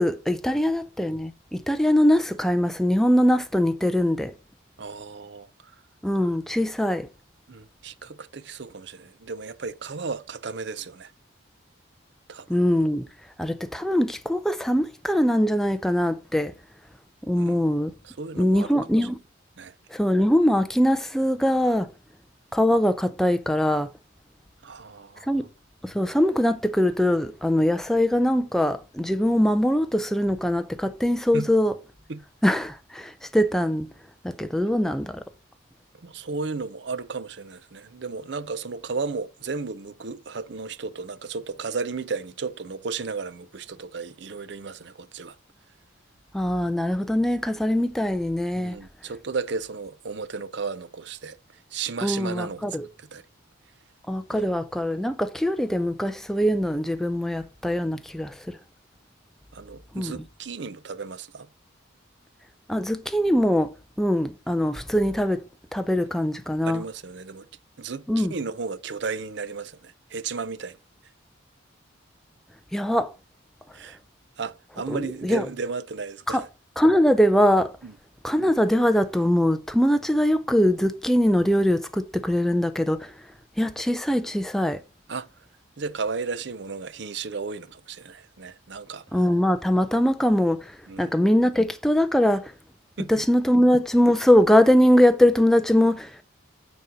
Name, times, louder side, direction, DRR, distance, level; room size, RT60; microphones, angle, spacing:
voice 1, 0.0-4.3 6.0-7.1 12.5-13.1 13.4-16.5 17.3-17.9 18.4-19.2 19.9-21.9 22.5-23.9 25.3-25.4 25.8-31.7 32.4-33.9 34.2-35.2 46.3-48.8 52.0-52.9 54.1-58.6 59.9-60.1 62.7-63.7 64.0-65.4 65.7-66.8 68.1-68.3 72.7-73.1 74.9-75.5 76.3-76.4 76.8-77.7 78.2-83.1 83.6-84.8 89.1-92.5 93.1-96.2, equal, ahead, 0.4 m, -22 dB
voice 2, 4.8-5.7 7.5-11.1 12.3-12.6 17.4-17.6 18.0-18.8 19.6-19.7 24.6-25.5 31.3-31.5 32.1-32.2 34.6-34.7 36.0-45.4 48.5-51.4 51.7-52.7 53.0-53.2 54.3-54.5 59.5-61.5 66.7-67.5 67.8-70.8 73.7-74.0 74.4-76.5 77.8-77.9 85.1-85.3 85.8-89.2 90.9-91.1 93.0-93.2, right 4 dB, 60° right, 0.6 m, -34 dB
9.3 x 4.2 x 5.0 m
head